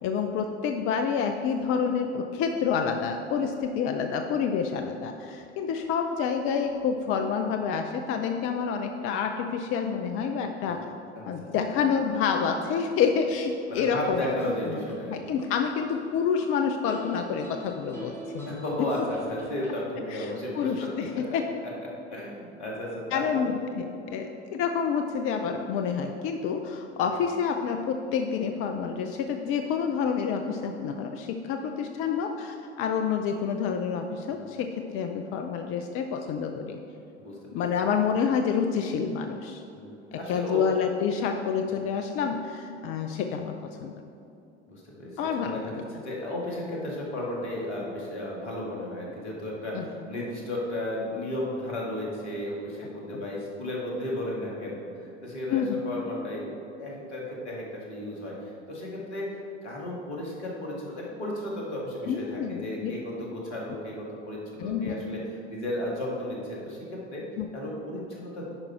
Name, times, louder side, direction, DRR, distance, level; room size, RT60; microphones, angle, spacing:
voice 1, 0.0-10.8 11.3-14.2 15.1-18.5 19.0-19.1 20.1-21.4 23.1-36.8 37.5-39.6 40.3-43.5 43.8-43.9 45.2-45.7 49.7-49.9 53.1-53.2 55.5-55.8 62.1-62.9 64.6-65.2 67.4-67.5, left 6 dB, 40° left, 5 dB, 0.5 m, -28 dB
voice 2, 11.2-11.5 13.7-15.2 18.5-21.4 22.1-23.5 34.3-34.4 37.2-37.7 39.7-40.6 44.7-65.2 65.5-67.2 67.5-68.5, left 1 dB, 70° left, -3 dB, 2.0 m, -34 dB
sound 1, 13.9-15.0 15.4-16.5 16.9-19.8, right 2 dB, 5° left, 2.0 m, -44 dB
9.7 x 5.4 x 4.5 m, 2.7 s
figure-of-eight pair, 70°, 35 cm